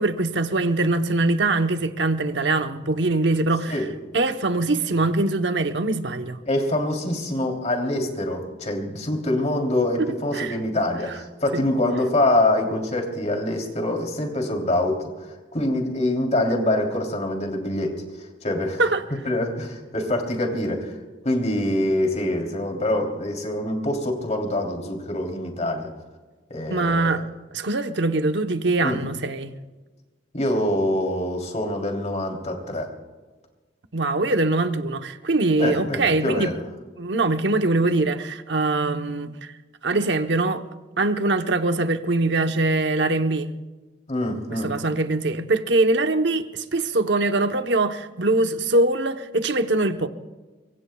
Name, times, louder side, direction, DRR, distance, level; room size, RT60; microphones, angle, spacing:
voice 1, 0.0-3.8 4.1-6.4 10.3-10.6 11.5-11.6 18.8-19.0 26.7-27.2 27.5-29.5 33.9-36.5 37.0-39.5 39.8-40.6 41.0-43.5 44.5-50.1, right 2 dB, 75° right, 1.0 m, -22 dB
voice 2, 6.4-15.1 15.5-18.0 18.4-18.8 19.2-20.9 21.2-25.9 26.5-27.2 28.8-29.0 30.3-32.9 35.6-36.6 44.1-44.8, left 1 dB, 40° left, 3.2 m, -25 dB
24.5 x 24.0 x 2.3 m
head